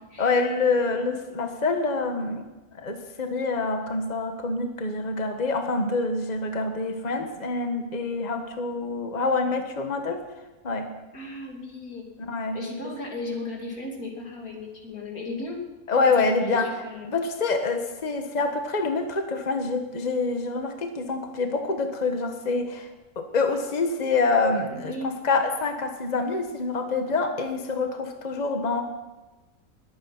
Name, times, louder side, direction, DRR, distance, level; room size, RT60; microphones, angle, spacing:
voice 1, 0.2-2.4 2.7-10.2 10.6-10.9 12.2-12.6 15.9-16.7 17.1-22.9 23.1-28.8, left 3 dB, 30° left, 5 dB, 1.4 m, -26 dB
voice 2, 11.1-12.1 12.5-15.6 16.2-17.1 24.8-25.1, left 2 dB, 85° left, 0 dB, 3.4 m, -35 dB
21.0 x 8.9 x 5.9 m, 1.2 s
omnidirectional pair, 1.5 m